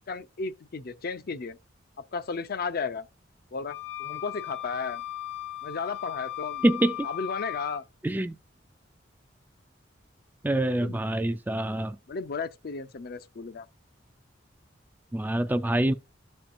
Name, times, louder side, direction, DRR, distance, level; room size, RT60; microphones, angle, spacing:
voice 1, 0.1-1.6 2.0-3.1 3.5-5.0 5.6-6.6 7.0-7.8 10.8-11.0 12.1-13.7, left 4 dB, 55° left, 0.5 m, -34 dB
sound 1, 3.7-7.8, left 13 dB, 80° left, 1.0 m, -37 dB
voice 2, 6.6-7.0 8.0-8.4 10.4-12.0 15.1-15.9, right 1 dB, 10° right, 0.3 m, -25 dB
12.5 x 4.4 x 2.5 m
head